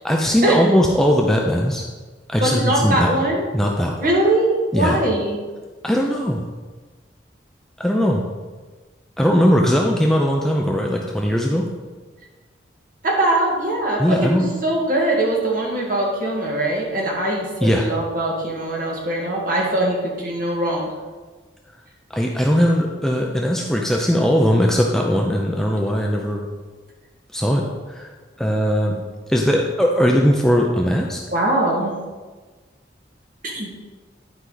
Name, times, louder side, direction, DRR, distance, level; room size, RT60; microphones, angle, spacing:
voice 1, 0.0-1.8 2.3-3.2 3.5-4.1 4.7-5.0 5.8-6.4 7.8-8.2 9.2-11.7 14.0-14.5 17.6-17.9 22.1-26.5 27.3-27.6 27.9-28.1 28.4-29.0 29.3-31.2, equal, ahead, -1 dB, 0.5 m, -19 dB
voice 2, 2.4-3.5 4.0-5.4 13.0-20.9 31.3-31.9 33.5-33.7, right 1 dB, 50° right, -2 dB, 1.8 m, -21 dB
11.0 x 4.7 x 3.9 m, 1.3 s
head